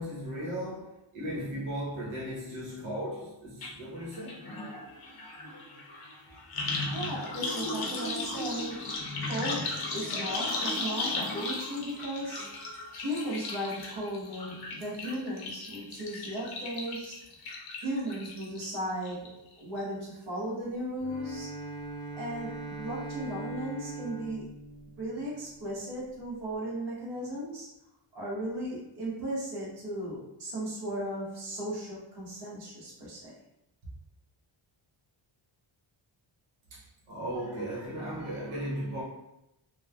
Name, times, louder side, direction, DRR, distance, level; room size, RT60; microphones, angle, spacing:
voice 1, 0.0-4.4 36.7-39.0, equal, 80° right, 1.0 m, -36 dB
sound 1, 3.6-3.7 4.0-18.6 19.0-19.5 19.8-19.9, left 2 dB, 50° left, 0.6 m, -36 dB
voice 2, 6.7-8.9 9.2-12.4 13.0-17.2 17.8-21.5 22.1-24.4 25.0-27.7 28.1-33.3, right 1 dB, 55° right, 1.0 m, -36 dB
Bowed string instrument, 21.0-25.6, right 3 dB, 5° left, 0.6 m, -40 dB
3.2 x 2.1 x 2.2 m
wide cardioid pair, 155°, 48 cm